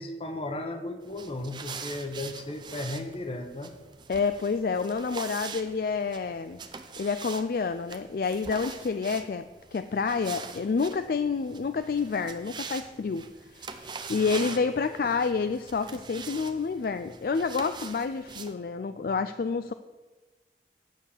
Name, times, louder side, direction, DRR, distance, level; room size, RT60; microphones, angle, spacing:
voice 1, 0.0-3.7, left 2 dB, 30° left, 6 dB, 1.0 m, -35 dB
sound 1, 1.0-18.5, right 5 dB, 25° right, 0.6 m, -43 dB
voice 2, 4.1-6.6 7.0-9.5 9.7-13.3 13.5-19.7, left 5 dB, 55° left, 10 dB, 0.3 m, -29 dB
9.2 x 6.5 x 7.2 m, 1.3 s
head